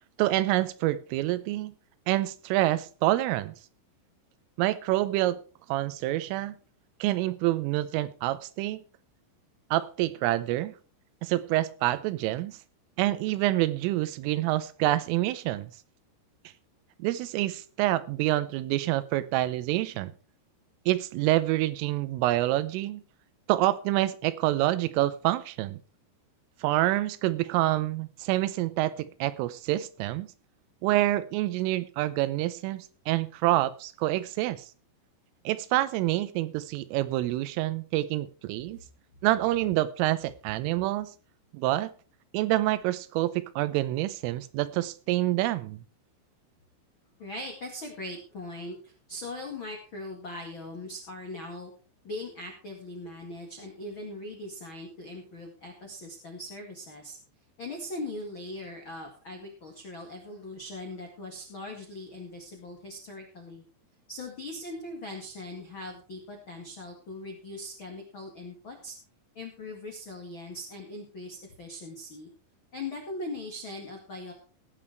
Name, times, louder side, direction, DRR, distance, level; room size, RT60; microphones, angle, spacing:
voice 1, 0.2-1.7 2.1-3.5 4.6-5.4 5.7-6.6 7.0-8.8 9.7-10.7 11.2-12.6 13.0-15.7 17.0-20.1 20.9-23.0 23.5-25.8 26.6-30.3 30.8-34.6 35.5-38.8 39.2-41.1 41.5-41.9 42.3-45.8, right 16 dB, 85° right, 15 dB, 3.3 m, -27 dB
voice 2, 47.2-51.7 52.0-57.2 57.6-63.6 64.1-68.9 69.3-72.3 72.7-74.3, left 2 dB, 75° left, 2 dB, 1.1 m, -40 dB
17.5 x 7.1 x 4.5 m, 0.37 s
omnidirectional pair, 5.8 m